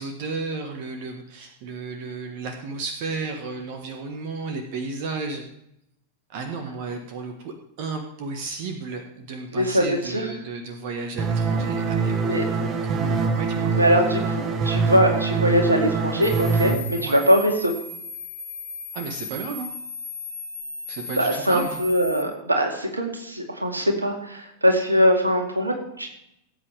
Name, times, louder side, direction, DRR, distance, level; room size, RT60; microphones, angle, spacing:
voice 1, 0.0-5.4 6.3-13.7 17.0-17.2 18.9-19.7 20.9-21.8, right 4 dB, 50° right, 5 dB, 1.4 m, -33 dB
voice 2, 9.5-10.3 12.2-12.5 13.7-17.7 21.2-26.1, equal, 85° right, 2 dB, 2.3 m, -22 dB
sound 1, 11.2-16.8, right 4 dB, 30° right, 1.4 m, -24 dB
sound 2, 16.2-22.2, left 2 dB, 85° left, 4.0 m, -36 dB
18.0 x 8.6 x 3.5 m, 0.77 s
figure-of-eight pair, 90°, 0 cm